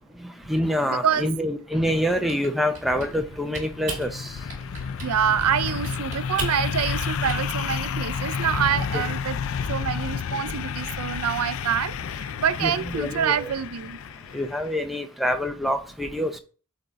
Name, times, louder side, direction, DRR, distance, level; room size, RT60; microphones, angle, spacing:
voice 1, 0.2-4.3 8.9-9.0 12.6-13.5 14.3-16.4, equal, ahead, 0.6 m, -26 dB
voice 2, 0.9-1.3 5.0-9.4 9.7-14.0, right 8 dB, 85° right, 0.4 m, -26 dB
Typing, 2.1-3.3 3.5-4.1 4.5-5.1 5.4-7.4, right 3 dB, 35° right, 2.3 m, -37 dB
sound 1, 3.1-14.8, left 6 dB, 65° left, 0.4 m, -31 dB
8.5 x 3.7 x 4.0 m
head